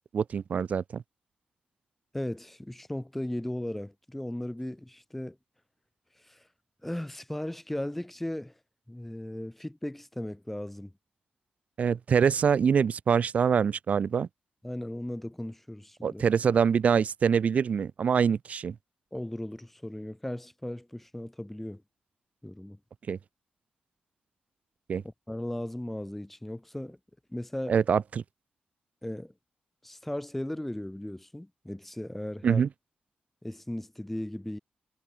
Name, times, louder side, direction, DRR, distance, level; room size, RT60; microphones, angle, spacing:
voice 1, 0.1-1.0 11.8-14.3 16.0-18.8 23.1-23.2 24.9-25.0 27.7-28.2 32.4-32.7, right 7 dB, 60° right, 2.2 m, -25 dB
voice 2, 2.1-5.4 6.2-6.4 6.8-8.5 8.9-10.9 14.6-16.2 19.1-21.8 22.4-22.8 25.0-27.0 27.3-27.8 29.0-29.3 29.8-32.6 33.4-34.6, left 1 dB, 5° left, 4.5 m, -36 dB
wide cardioid pair, 135°, 3 cm